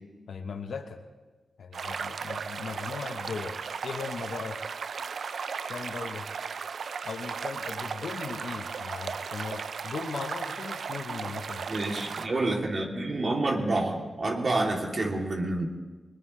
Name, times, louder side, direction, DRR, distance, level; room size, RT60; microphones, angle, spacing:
voice 1, 0.3-1.0 1.6-4.6 5.7-6.3 7.0-11.7, left 5 dB, 75° left, 6 dB, 1.1 m, -38 dB
sound 1, 1.7-12.3, right 5 dB, 75° right, 0.5 m, -36 dB
voice 2, 11.7-15.7, right 2 dB, 55° right, 0 dB, 3.0 m, -28 dB
21.5 x 20.5 x 3.3 m, 1.3 s
supercardioid pair, 40°, 0 cm